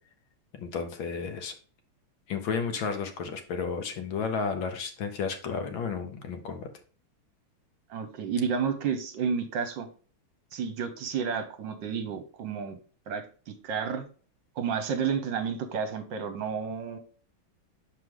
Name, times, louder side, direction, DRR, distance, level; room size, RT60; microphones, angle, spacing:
voice 1, 0.5-1.5 2.3-6.7, left 5 dB, 70° left, 6 dB, 1.6 m, -32 dB
voice 2, 7.9-9.9 10.5-12.8 13.1-14.1 14.6-17.0, right 6 dB, 65° right, 8 dB, 1.4 m, -31 dB
6.6 x 4.8 x 3.6 m, 0.40 s
omnidirectional pair, 2.3 m